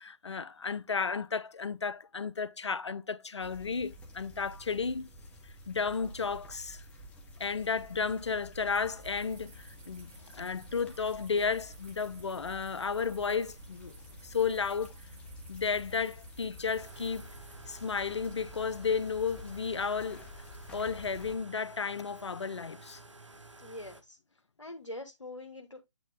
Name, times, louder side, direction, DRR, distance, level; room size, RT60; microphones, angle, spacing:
voice 1, 0.0-5.1 5.7-6.8 7.4-14.0 14.2-14.9 15.5-17.2 17.7-20.3 20.7-23.0, left 5 dB, 70° left, 0.6 m, -33 dB
sound 1, 3.4-21.4, left 1 dB, 10° left, 1.2 m, -50 dB
sound 2, 8.7-17.6, right 3 dB, 25° right, 2.0 m, -56 dB
sound 3, 16.7-24.0, right 2 dB, 80° right, 1.5 m, -52 dB
voice 2, 23.6-24.2 24.6-25.8, left 1 dB, 85° left, 1.1 m, -44 dB
9.0 x 3.3 x 3.6 m
figure-of-eight pair, 140°, 15 cm